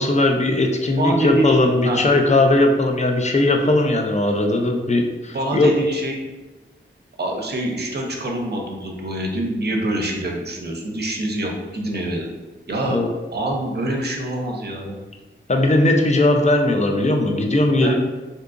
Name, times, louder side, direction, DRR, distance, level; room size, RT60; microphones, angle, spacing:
voice 1, 0.0-5.7 12.8-13.1 15.5-17.9, left 2 dB, 35° left, 3 dB, 0.4 m, -18 dB
voice 2, 1.0-2.0 3.5-3.7 5.3-6.2 7.2-12.3 12.7-13.0 13.3-15.0 17.8-17.9, right 1 dB, 50° right, 1 dB, 0.6 m, -25 dB
3.5 x 2.7 x 2.5 m, 1.2 s
wide cardioid pair, 70°, 21 cm